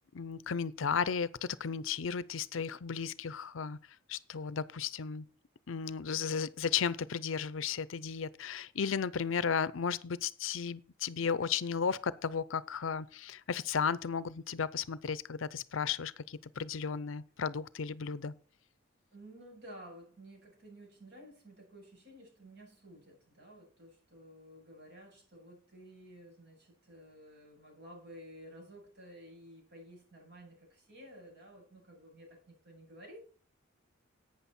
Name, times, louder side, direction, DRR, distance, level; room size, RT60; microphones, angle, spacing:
voice 1, 0.1-3.8 4.1-5.2 5.7-18.3, left 6 dB, 70° left, 0.6 m, -34 dB
voice 2, 19.1-33.2, equal, 60° right, 7.3 m, -53 dB
11.5 x 8.8 x 4.3 m
head